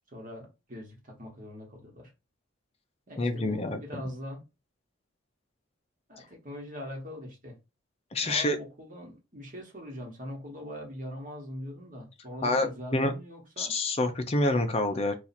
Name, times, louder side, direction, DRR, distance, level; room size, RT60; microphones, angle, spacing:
voice 1, 0.1-2.1 3.1-4.4 6.1-7.6 8.2-13.8, equal, 40° right, 1.2 m, -42 dB
voice 2, 3.2-3.8 8.1-8.6 12.4-13.1 13.6-15.1, left 2 dB, 30° left, 0.5 m, -27 dB
2.8 x 2.4 x 4.1 m
head